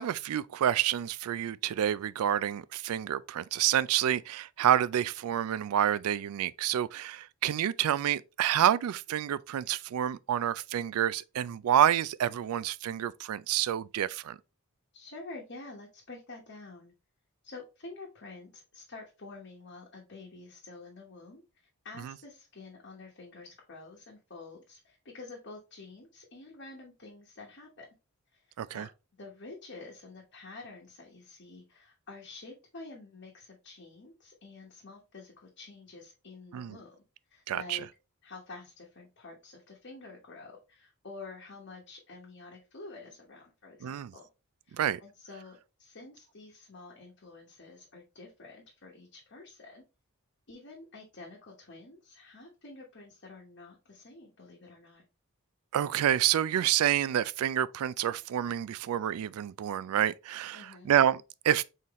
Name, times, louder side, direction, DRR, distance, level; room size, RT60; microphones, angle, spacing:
voice 1, 0.0-14.4 22.0-22.1 28.6-28.9 36.5-36.8 37.5-37.9 43.8-44.1 44.7-45.0 55.7-61.6, right 10 dB, 75° right, 0.3 m, -28 dB
voice 2, 14.9-16.9 17.4-27.9 28.3-28.9 29.2-37.0 37.3-37.9 38.2-44.3 44.7-49.8 50.5-55.0 60.5-60.9, left 3 dB, 55° left, 1.0 m, -48 dB
4.1 x 3.9 x 3.0 m
head